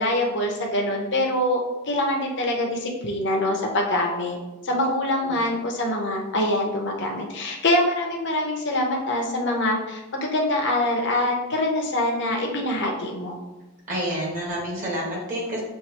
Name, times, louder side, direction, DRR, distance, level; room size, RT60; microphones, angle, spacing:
voice 1, 0.0-4.4 4.6-13.4, left 1 dB, 55° left, 1 dB, 0.9 m, -24 dB
voice 2, 13.9-15.6, equal, 35° right, -4 dB, 1.6 m, -29 dB
6.4 x 2.6 x 2.9 m, 1.0 s
head